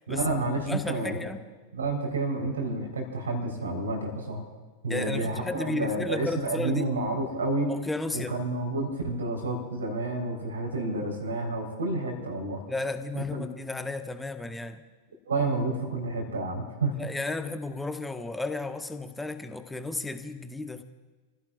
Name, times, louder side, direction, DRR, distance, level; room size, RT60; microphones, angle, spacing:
voice 1, 0.1-1.2 1.7-4.4 4.8-7.7 8.1-12.6 13.1-13.5 15.3-16.9, right 2 dB, 70° right, 1 dB, 4.0 m, -30 dB
voice 2, 0.6-1.4 4.9-6.9 7.7-8.3 12.7-14.8 16.9-20.8, left 2 dB, 5° left, 8 dB, 1.1 m, -33 dB
30.0 x 16.0 x 2.5 m, 1.3 s
figure-of-eight pair, 90°, 0 cm